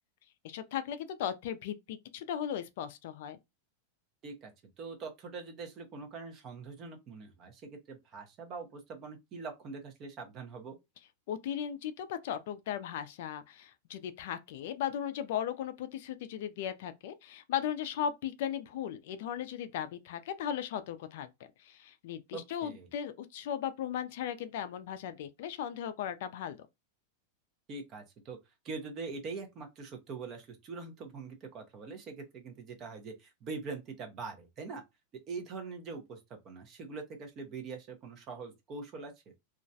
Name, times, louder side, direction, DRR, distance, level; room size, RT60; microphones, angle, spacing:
voice 1, 0.4-3.4 11.3-21.3 21.6-26.7, left 9 dB, 55° left, 0.3 m, -37 dB
voice 2, 4.8-10.8 22.3-22.9 27.7-28.4 28.6-34.8 35.3-39.1, right 4 dB, 25° right, 0.6 m, -43 dB
2.3 x 2.0 x 2.6 m
supercardioid pair, 165°, 0 cm